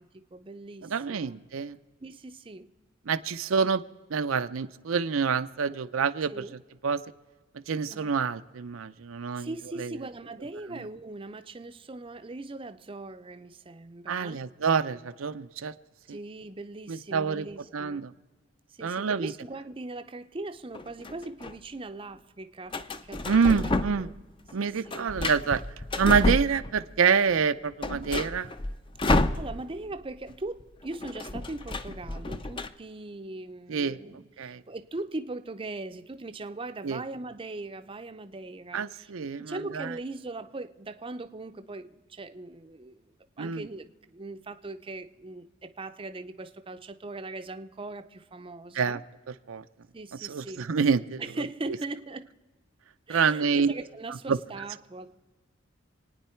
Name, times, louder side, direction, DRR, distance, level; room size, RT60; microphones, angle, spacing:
voice 1, 0.0-1.4 2.0-2.7 6.3-6.6 7.9-8.1 9.4-14.5 16.1-18.0 18.7-24.1 24.6-25.1 29.1-39.1 39.4-43.0 43.4-49.0 49.9-50.7 51.2-52.3 53.1-55.1, right 2 dB, 25° right, 0.5 m, -40 dB
voice 2, 0.9-1.8 3.1-3.8 4.1-6.3 6.8-7.0 7.7-9.9 14.1-15.7 16.9-17.5 17.7-18.1 18.8-19.3 23.2-24.1 24.5-25.6 26.0-28.5 33.7-34.0 34.4-34.6 36.8-37.0 38.7-39.9 43.4-43.6 48.7-49.0 49.5-49.6 50.3-51.2 53.1-53.7 54.3-54.4, right 6 dB, 80° right, 0.5 m, -27 dB
sound 1, 20.7-21.5 22.7-24.2 24.5-27.0 27.3-27.4 27.7-29.9 30.2-30.3 30.6-32.7, left 2 dB, 25° left, 0.5 m, -30 dB
27.0 x 9.5 x 4.4 m
head